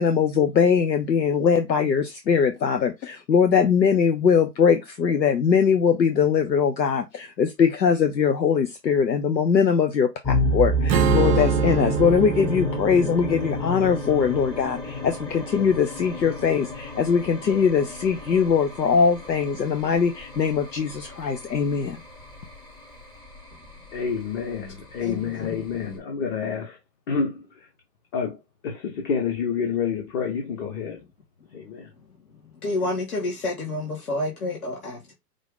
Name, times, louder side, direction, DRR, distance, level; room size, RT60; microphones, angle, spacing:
voice 1, 0.0-22.0, left 6 dB, 85° left, 0.7 m, -21 dB
sound 1, 10.2-26.0, equal, 10° left, 0.8 m, -30 dB
Strum, 10.9-16.2, right 9 dB, 70° right, 0.7 m, -29 dB
voice 2, 23.9-26.8 27.1-27.5 28.1-28.4 28.6-31.0 31.5-31.9, left 6 dB, 30° left, 1.0 m, -28 dB
voice 3, 25.0-25.6 32.3-35.1, left 2 dB, 60° left, 1.7 m, -30 dB
5.0 x 2.5 x 3.7 m
figure-of-eight pair, 115°, 50 cm